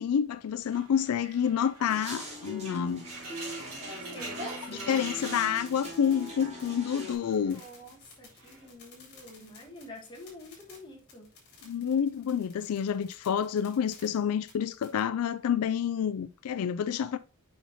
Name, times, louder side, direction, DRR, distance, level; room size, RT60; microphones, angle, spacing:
voice 1, 0.0-3.0 4.7-7.6 11.6-17.2, left 8 dB, 80° left, 0.4 m, -28 dB
sound 1, 0.7-6.3 6.5-7.7 8.3-8.7, right 3 dB, 85° right, 2.8 m, -45 dB
sound 2, 1.8-7.1, equal, 30° right, 2.9 m, -41 dB
voice 2, 4.0-5.0 7.5-11.3, left 1 dB, 20° left, 2.1 m, -48 dB
sound 3, 4.9-15.0, left 4 dB, 50° left, 3.5 m, -55 dB
7.2 x 5.7 x 2.8 m
head